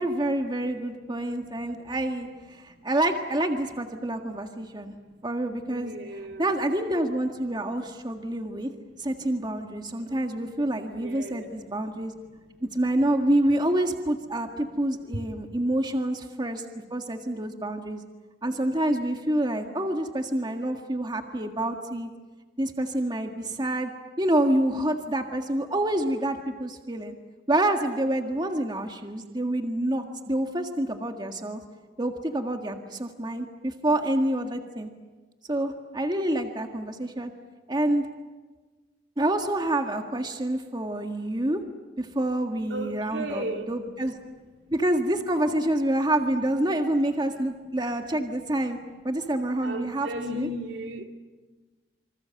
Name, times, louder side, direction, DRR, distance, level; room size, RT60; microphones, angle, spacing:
voice 1, 0.0-4.9 5.2-5.9 6.4-8.7 9.0-12.1 12.7-16.6 16.9-18.0 18.4-22.1 22.6-23.9 24.2-27.1 27.5-31.6 32.0-34.9 35.5-37.3 37.7-38.1 39.2-41.6 42.0-44.1 44.7-48.8 49.0-50.5, right 1 dB, 25° right, 4 dB, 1.8 m, -27 dB
voice 2, 1.3-1.7 2.5-2.9 4.4-5.3 5.7-6.5 7.6-9.3 9.9-12.6 14.4-14.5 15.1-15.4 42.7-43.7 44.0-44.1 44.6-44.7 47.7-47.8 48.9-49.0 49.6-51.0, right 1 dB, 70° right, 3 dB, 2.9 m, -39 dB
27.5 x 26.0 x 7.8 m, 1.3 s
head